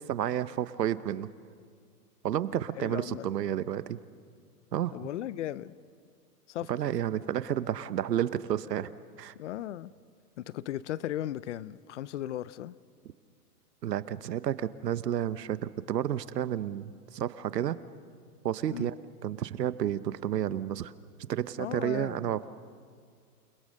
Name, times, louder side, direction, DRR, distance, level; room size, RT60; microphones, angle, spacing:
voice 1, 0.1-1.3 2.2-4.0 4.7-4.9 6.7-8.9 9.2-9.3 13.8-17.8 18.4-18.9 19.2-20.9 21.3-22.5, right 11 dB, 90° right, 15 dB, 1.1 m, -31 dB
voice 2, 2.8-3.3 4.9-5.7 6.5-6.7 9.4-9.9 10.4-12.8 18.7-18.9 21.6-22.4, left 12 dB, 50° left, 19 dB, 0.6 m, -36 dB
29.0 x 20.5 x 6.6 m, 2.1 s
hypercardioid pair, 155°, 47 cm